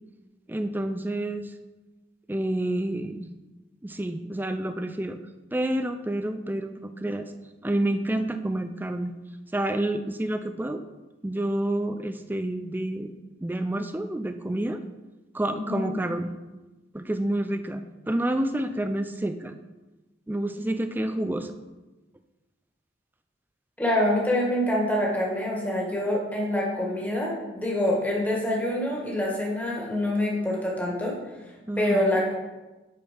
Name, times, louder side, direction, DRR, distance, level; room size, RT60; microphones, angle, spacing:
voice 1, 0.5-1.5 2.3-3.3 3.8-5.2 5.5-7.3 7.6-9.1 9.5-10.8 11.2-13.1 13.4-14.8 15.3-16.3 16.9-19.6 20.3-21.5 31.7-32.2, right 1 dB, 10° right, 8 dB, 0.4 m, -29 dB
voice 2, 23.8-31.2 31.8-32.4, left 1 dB, 10° left, -3 dB, 1.6 m, -26 dB
8.3 x 4.4 x 5.2 m, 1.1 s
head